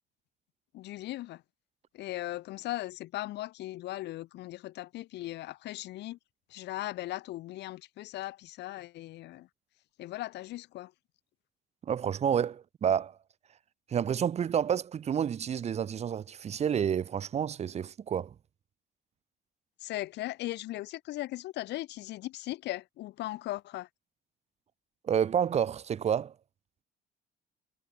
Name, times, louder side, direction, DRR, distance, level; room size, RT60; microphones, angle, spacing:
voice 1, 0.7-1.4 1.9-6.2 6.5-9.5 10.0-10.9 19.8-23.9, left 16 dB, 80° left, 2.3 m, -38 dB
voice 2, 11.9-13.2 13.9-18.3 25.0-26.3, right 8 dB, 35° right, 2.1 m, -29 dB
cardioid pair, 155°, 18 cm